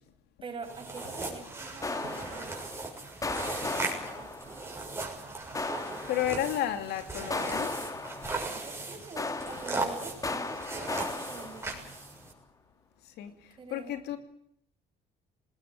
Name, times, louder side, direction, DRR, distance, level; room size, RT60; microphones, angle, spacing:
voice 1, 0.4-2.6 3.4-4.8 8.5-11.8 13.3-14.0, right 4 dB, 30° right, 6.9 m, -46 dB
sound 1, 0.6-12.3, right 3 dB, 15° right, 6.7 m, -38 dB
sound 2, 0.9-1.4 1.8-2.9 3.2-4.8 5.5-6.7 7.3-8.8 9.2-12.1, left 3 dB, 20° left, 1.9 m, -37 dB
voice 2, 6.1-7.8 13.2-13.3 13.7-14.2, left 11 dB, 80° left, 2.5 m, -32 dB
19.5 x 19.5 x 9.9 m
cardioid pair, 110°, 17 cm